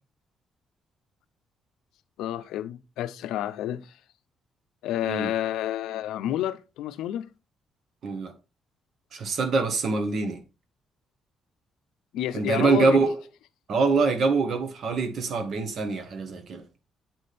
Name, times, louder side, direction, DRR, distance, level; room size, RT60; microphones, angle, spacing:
voice 1, 2.2-4.0 4.8-7.3 12.1-13.0, left 12 dB, 90° left, 0.5 m, -30 dB
voice 2, 9.1-10.4 12.3-13.2 13.7-16.6, right 4 dB, 60° right, 1.3 m, -24 dB
8.4 x 3.3 x 4.1 m
cardioid pair, 90°, 0 cm